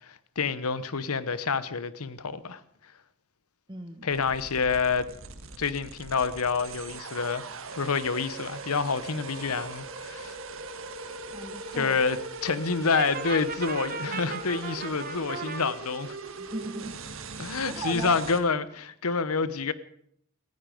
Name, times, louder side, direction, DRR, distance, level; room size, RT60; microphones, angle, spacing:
voice 1, 0.0-2.6 4.0-5.1 5.6-7.4 7.7-10.3 11.8-12.2 12.4-16.2 17.4-19.7, left 5 dB, 85° left, 1.0 m, -28 dB
voice 2, 3.7-4.1 11.3-12.0 16.4-17.0 17.6-18.2, right 1 dB, 20° right, 1.4 m, -37 dB
sound 1, 4.1-18.4, right 3 dB, 65° right, 1.5 m, -40 dB
Brass instrument, 12.9-15.6, right 5 dB, 40° right, 1.4 m, -36 dB
18.5 x 15.0 x 5.1 m
head